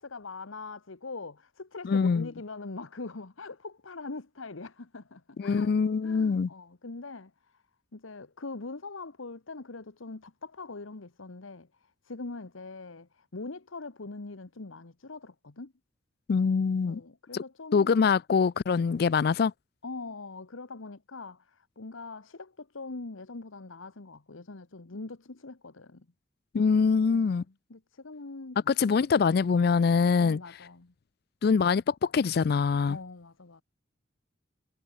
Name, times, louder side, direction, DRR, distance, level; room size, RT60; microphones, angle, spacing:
voice 1, 0.0-5.7 6.0-7.3 7.9-15.7 16.8-18.0 19.8-26.1 26.9-28.6 30.2-30.9 32.9-33.6, left 3 dB, 85° left, 1.2 m, -42 dB
voice 2, 1.8-2.3 5.4-6.5 16.3-17.0 17.3-17.4 17.7-19.5 26.5-27.4 28.7-30.4 31.4-33.0, left 5 dB, 50° left, 0.3 m, -24 dB
head